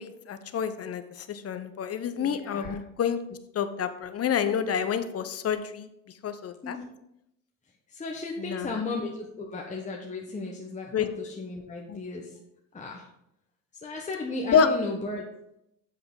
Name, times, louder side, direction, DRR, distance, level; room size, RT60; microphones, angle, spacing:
voice 1, 0.0-3.2 3.5-5.9 6.2-6.8 8.4-8.7 10.9-11.1 11.9-12.0 14.5-14.7, left 7 dB, 35° left, 11 dB, 0.9 m, -28 dB
voice 2, 2.2-2.8 6.6-6.9 7.9-12.3 12.7-13.1 13.7-15.2, left 3 dB, 15° left, -1 dB, 1.3 m, -35 dB
7.9 x 7.7 x 3.9 m, 0.80 s
hypercardioid pair, 75°, 42 cm